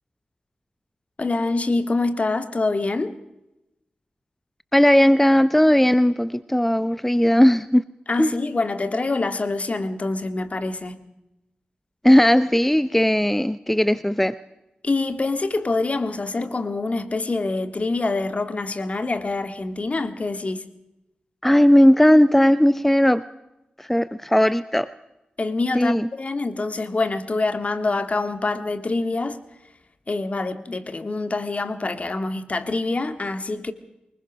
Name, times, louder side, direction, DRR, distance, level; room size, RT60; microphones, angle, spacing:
voice 1, 1.2-3.1 8.1-11.0 14.8-20.6 25.4-29.4 30.1-33.7, left 3 dB, 45° left, 1.9 m, -25 dB
voice 2, 4.7-7.8 8.2-8.3 12.0-14.4 21.4-23.2 23.8-24.9 25.7-26.1, equal, 5° left, 0.8 m, -17 dB
23.5 x 20.5 x 6.3 m
cardioid pair, 45°, 3 cm